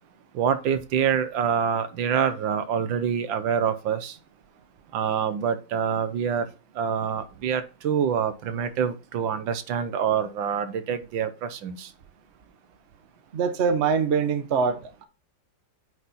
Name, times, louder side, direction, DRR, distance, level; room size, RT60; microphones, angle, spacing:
voice 1, 0.3-4.2 4.9-6.5 6.7-11.9, right 7 dB, 75° right, 1.5 m, -26 dB
voice 2, 13.3-15.1, right 6 dB, 45° right, 0.9 m, -24 dB
9.2 x 4.1 x 4.1 m
omnidirectional pair, 2.1 m